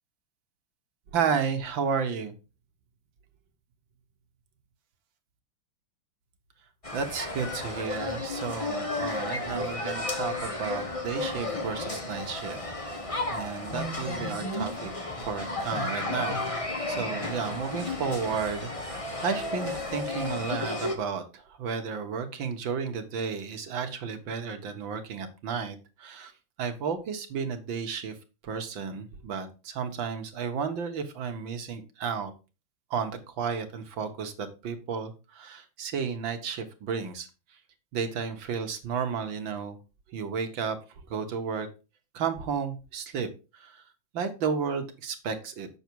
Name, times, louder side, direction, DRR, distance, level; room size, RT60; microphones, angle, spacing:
voice 1, 1.1-2.3 6.9-12.6 12.9-13.0 13.3-14.9 15.2-26.3 26.6-28.2 28.4-32.3 32.9-37.3 37.9-39.8 40.1-40.8 41.0-41.7 42.1-43.3 43.5-43.8 44.1-45.7, right 6 dB, 65° right, 7 dB, 2.0 m, -32 dB
sound 1, 6.8-21.0, left 2 dB, 20° left, 1.1 m, -33 dB
8.2 x 6.4 x 4.6 m, 0.31 s
omnidirectional pair, 2.3 m